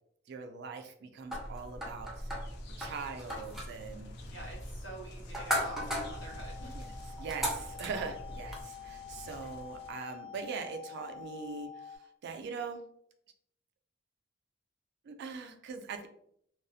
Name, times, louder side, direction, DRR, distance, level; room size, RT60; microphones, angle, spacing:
voice 1, 0.3-2.3 2.8-4.1 6.7-6.9 7.2-12.9 15.0-16.1, right 5 dB, 60° right, 7 dB, 0.3 m, -41 dB
sound 1, 1.3-8.6, equal, ahead, 0.5 m, -38 dB
sound 2, 2.1-9.9, left 2 dB, 60° left, 0.4 m, -52 dB
voice 2, 4.3-6.8, right 1 dB, 75° left, -4 dB, 1.1 m, -47 dB
sound 3, 5.5-12.0, left 7 dB, 35° left, 1.3 m, -48 dB
2.3 x 2.0 x 2.6 m, 0.70 s
head